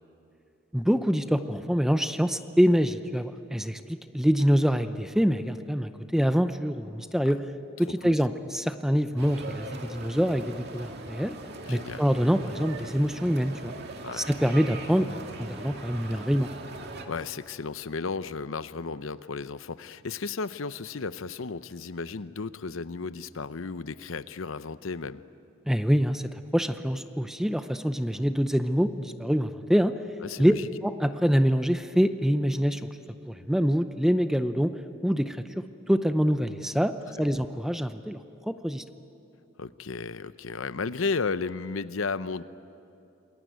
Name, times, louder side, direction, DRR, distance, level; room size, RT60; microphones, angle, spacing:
voice 1, 0.7-3.8 4.1-7.4 7.8-11.4 11.7-13.8 14.2-16.5 25.7-26.2 26.5-30.0 30.4-30.5 30.8-32.8 33.3-34.7 35.0-35.4 35.9-36.9 37.2-38.2 38.5-38.8, equal, ahead, 10 dB, 0.6 m, -25 dB
sound 1, 9.2-17.1, right 2 dB, 55° right, 2.3 m, -40 dB
voice 2, 11.7-12.0 14.0-14.2 17.1-25.2 30.2-30.7 37.2-37.3 39.6-42.4, left 4 dB, 90° left, 14 dB, 0.8 m, -34 dB
27.5 x 21.5 x 9.3 m, 2.7 s
head